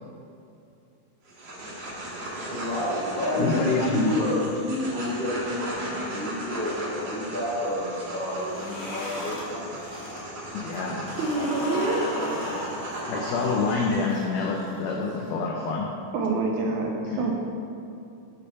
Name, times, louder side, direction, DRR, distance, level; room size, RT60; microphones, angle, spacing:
Jadeo rex, 1.2-14.0, right 1 dB, 60° right, 1.3 m, -37 dB
voice 1, 2.5-9.6 12.4-12.7, left 1 dB, 70° left, -11 dB, 0.5 m, -29 dB
voice 2, 3.4-4.1 10.5-11.0 13.1-15.9 17.0-17.3, left 4 dB, 90° left, -1 dB, 1.5 m, -27 dB
sound 1, 8.3-10.2 10.5-15.3, left 1 dB, 50° left, 1.6 m, -35 dB
voice 3, 11.2-12.2 16.1-17.3, right 3 dB, 80° right, 0 dB, 1.9 m, -26 dB
8.3 x 2.8 x 5.4 m, 2.7 s
omnidirectional pair, 3.7 m